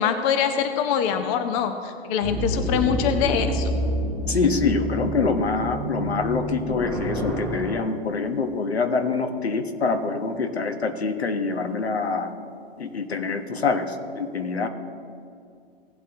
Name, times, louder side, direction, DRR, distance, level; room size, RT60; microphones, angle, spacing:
voice 1, 0.0-3.7, left 8 dB, 35° left, 8 dB, 0.8 m, -24 dB
sound 1, 2.2-7.8, right 1 dB, 10° left, 2.2 m, -28 dB
voice 2, 4.3-12.3 12.8-14.7, left 4 dB, 85° left, 7 dB, 1.2 m, -25 dB
17.5 x 7.8 x 2.9 m, 2.3 s
hypercardioid pair, 120°, 31 cm